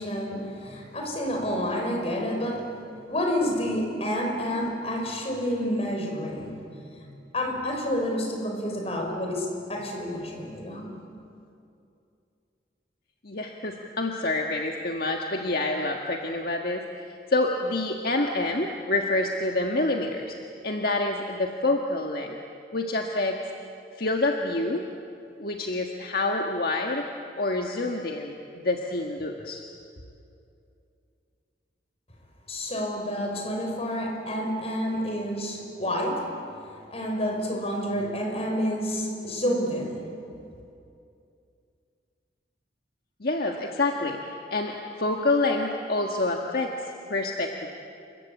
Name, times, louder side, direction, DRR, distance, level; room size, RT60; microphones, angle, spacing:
voice 1, 0.0-10.9 32.5-36.3 36.9-40.2, equal, 35° left, 2 dB, 5.2 m, -29 dB
voice 2, 13.2-20.3 20.6-22.4 22.7-23.4 24.0-24.8 25.4-27.0 27.4-29.6 43.2-47.8, left 2 dB, 55° left, 1 dB, 1.6 m, -27 dB
29.0 x 22.5 x 8.6 m, 2.6 s
head